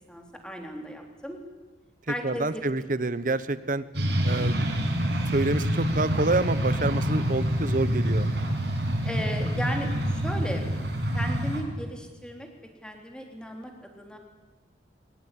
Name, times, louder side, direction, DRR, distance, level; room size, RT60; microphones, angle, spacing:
voice 1, 0.1-1.4 2.1-2.6 9.0-10.7 11.1-12.5 12.8-14.2, equal, 5° left, 2 dB, 3.5 m, -35 dB
voice 2, 2.2-3.8 4.2-4.6 5.3-8.3, right 2 dB, 45° right, 14 dB, 1.1 m, -27 dB
sound 1, 3.9-11.6, equal, 70° right, 6.2 m, -26 dB
23.0 x 20.0 x 10.0 m, 1.2 s
head